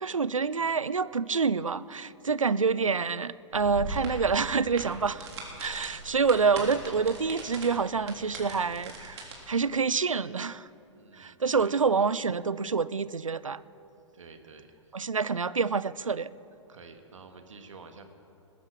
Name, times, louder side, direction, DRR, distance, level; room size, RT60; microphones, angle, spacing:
voice 1, 0.0-5.3 5.6-10.7 11.2-13.6 14.9-16.3, right 5 dB, 90° right, 18 dB, 0.5 m, -27 dB
sound 1, 3.5-9.3, right 3 dB, 55° right, 3.6 m, -40 dB
voice 2, 5.7-6.2 10.9-11.8 14.1-14.9 16.7-18.0, right 4 dB, 75° right, 6 dB, 1.6 m, -50 dB
20.5 x 10.0 x 6.1 m, 2.9 s
figure-of-eight pair, 110°, 16 cm